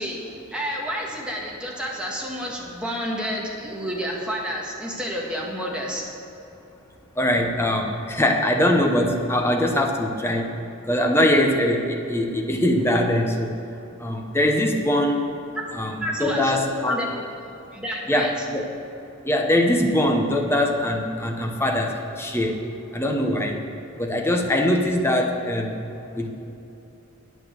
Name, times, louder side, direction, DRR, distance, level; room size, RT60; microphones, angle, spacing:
voice 1, 0.0-6.1 16.0-17.1 17.4-18.5, equal, 5° right, -3 dB, 1.6 m, -30 dB
voice 2, 7.2-10.5 10.8-13.5 14.0-15.2 15.7-17.0 18.1-18.6 19.2-22.6 22.9-23.6 24.0-25.8 26.1-26.3, left 1 dB, 10° left, 2 dB, 0.9 m, -22 dB
8.9 x 8.7 x 6.4 m, 2.8 s
head